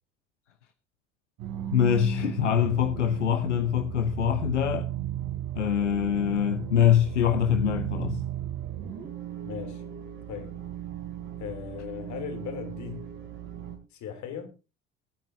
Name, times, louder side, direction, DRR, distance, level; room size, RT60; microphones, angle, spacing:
sound 1, 1.4-13.8, right 11 dB, 60° right, 3.8 m, -36 dB
voice 1, 1.7-4.9 5.5-8.2, left 9 dB, 85° left, 0.9 m, -24 dB
voice 2, 9.4-9.9 10.3-10.6 11.4-13.1 13.9-14.5, left 8 dB, 55° left, 3.3 m, -38 dB
22.0 x 9.3 x 2.8 m
figure-of-eight pair, 60°, 35 cm